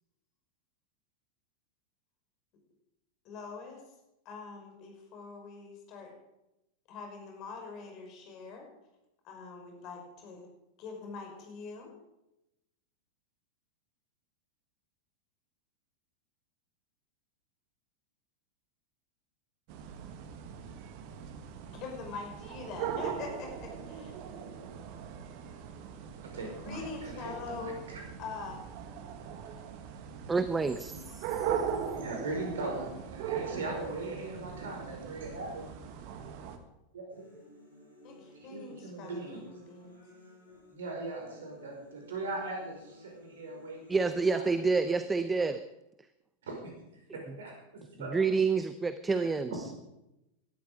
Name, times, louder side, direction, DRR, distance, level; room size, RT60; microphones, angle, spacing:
voice 1, 3.2-3.8 4.3-6.1 6.9-8.6 9.2-10.5 10.8-11.9 21.7-24.1 26.6-27.7 28.2-28.6 30.9-31.0 38.0-40.0, left 4 dB, 40° left, 2 dB, 5.5 m, -43 dB
sound 1, 19.7-36.6, right 8 dB, 45° right, 1.6 m, -40 dB
voice 2, 26.2-28.0 31.9-35.6 36.9-37.3 38.5-39.4 40.7-44.7 45.4-45.5 46.4-46.7 47.1-48.2 49.1-49.6, right 2 dB, 60° right, 1 dB, 5.3 m, -40 dB
voice 3, 30.3-31.5 43.9-45.6 48.1-49.5, right 4 dB, 15° right, 13 dB, 0.6 m, -28 dB
sound 2, 37.1-45.1, equal, 75° right, 6.8 m, -56 dB
17.5 x 13.0 x 5.1 m, 0.90 s
figure-of-eight pair, 90°, 0 cm